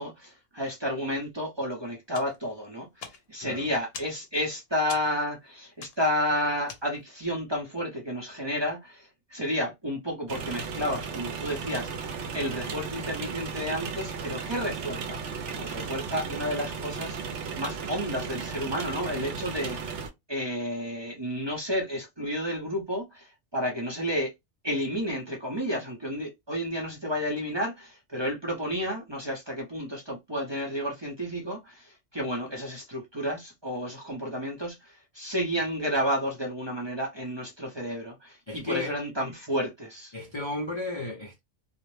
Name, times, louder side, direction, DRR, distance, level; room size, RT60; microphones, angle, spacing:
voice 1, 0.0-11.9 12.3-17.2 17.6-20.0 20.3-24.3 24.6-40.1, equal, 30° right, 0.6 m, -31 dB
sound 1, 2.1-7.3, left 5 dB, 60° left, 0.9 m, -47 dB
sound 2, 10.3-20.1, right 5 dB, 75° right, 0.9 m, -35 dB
voice 2, 38.5-39.0 40.1-41.4, left 2 dB, 40° left, 0.4 m, -34 dB
2.4 x 2.0 x 3.1 m
omnidirectional pair, 1.2 m